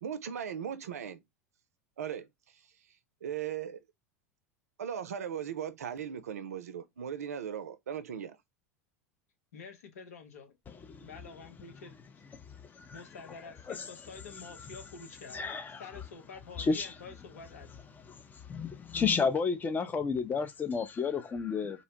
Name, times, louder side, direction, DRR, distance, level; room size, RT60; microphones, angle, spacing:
voice 1, 0.0-1.2 2.0-2.6 3.2-3.8 4.8-8.4, right 8 dB, 80° right, 0.4 m, -38 dB
voice 2, 9.5-11.9 12.9-15.5 15.8-17.7, left 5 dB, 75° left, 0.8 m, -48 dB
voice 3, 10.7-11.1 12.3-13.0 13.7-13.9 14.4-14.5 15.3-15.8 16.6-16.9 18.1-21.8, left 5 dB, 20° left, 0.5 m, -32 dB
2.7 x 2.0 x 2.8 m
hypercardioid pair, 85°, 8 cm